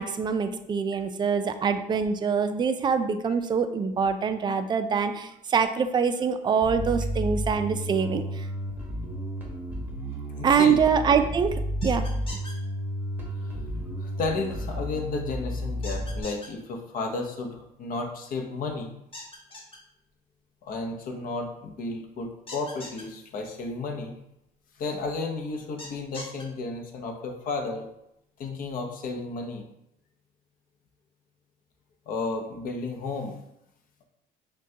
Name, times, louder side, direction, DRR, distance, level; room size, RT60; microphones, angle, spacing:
voice 1, 0.0-8.5 10.4-12.1, right 6 dB, 25° right, 9 dB, 0.3 m, -24 dB
Bass guitar, 6.6-16.2, equal, 10° right, 0.9 m, -32 dB
voice 2, 10.3-10.8 14.0-18.9 20.6-24.2 24.8-27.9 28.4-29.6 32.1-33.4, left 3 dB, 55° left, 3 dB, 0.7 m, -33 dB
sound 1, 11.8-12.5 15.8-16.5 19.1-19.8 22.5-23.0 25.8-26.4, left 2 dB, 30° left, 1.2 m, -40 dB
6.1 x 2.3 x 2.7 m, 0.81 s
cardioid pair, 110°, 17 cm